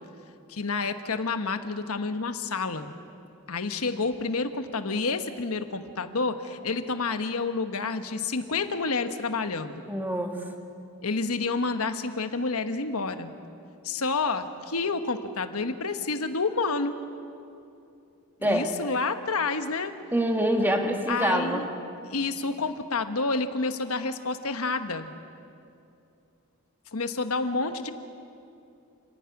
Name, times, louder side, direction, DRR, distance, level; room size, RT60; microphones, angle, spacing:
voice 1, 0.5-2.9 3.5-9.9 11.0-13.3 13.8-17.0 18.4-19.9 21.1-21.7 22.1-25.1 26.9-27.9, left 4 dB, 80° left, 9 dB, 1.3 m, -29 dB
voice 2, 9.9-10.4 18.4-18.7 20.1-21.7, equal, 10° right, 3 dB, 1.8 m, -25 dB
29.0 x 10.5 x 9.7 m, 2.6 s
head